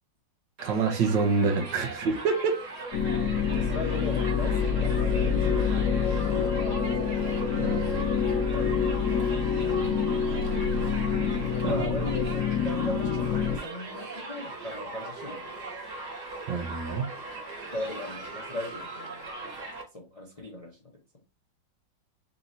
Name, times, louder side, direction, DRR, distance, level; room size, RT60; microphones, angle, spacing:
Crowd, 0.6-19.8, right 2 dB, 45° right, 1.6 m, -39 dB
voice 1, 0.6-2.5 7.6-8.0 11.6-11.7 16.5-17.1, right 4 dB, 80° right, 1.6 m, -26 dB
sound 1, 2.9-13.6, left 6 dB, 70° left, 0.8 m, -26 dB
voice 2, 3.5-7.1 7.5-7.7 8.5-9.1 11.3-15.5 17.7-19.5 19.9-20.9, left 2 dB, 30° left, 0.6 m, -38 dB
4.2 x 2.9 x 3.9 m
omnidirectional pair, 2.0 m